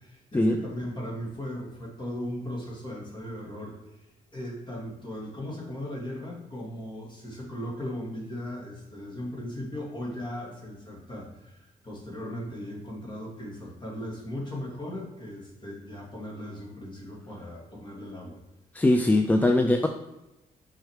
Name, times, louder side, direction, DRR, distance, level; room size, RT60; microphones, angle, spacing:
voice 1, 0.0-3.8 4.3-18.4, left 1 dB, 30° left, -3 dB, 2.4 m, -37 dB
voice 2, 18.7-19.9, left 1 dB, 10° left, 5 dB, 0.4 m, -21 dB
5.8 x 5.5 x 3.6 m, 0.97 s
cardioid pair, 95°, 15 cm